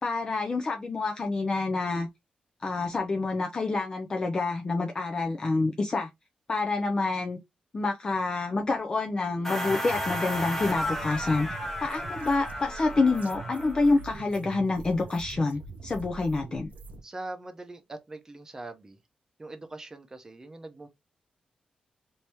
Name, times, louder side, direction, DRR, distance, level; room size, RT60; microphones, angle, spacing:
voice 1, 0.0-2.1 2.6-6.1 6.5-7.4 7.7-11.5 11.8-16.7, left 3 dB, 30° left, 0.4 m, -27 dB
sound 1, 9.4-14.0, left 1 dB, 10° left, 0.9 m, -34 dB
sound 2, 9.6-17.0, right 4 dB, 75° right, 0.5 m, -43 dB
voice 2, 17.0-19.0 19.4-20.9, right 2 dB, 20° right, 0.7 m, -42 dB
2.9 x 2.7 x 3.3 m
wide cardioid pair, 125°, 3 cm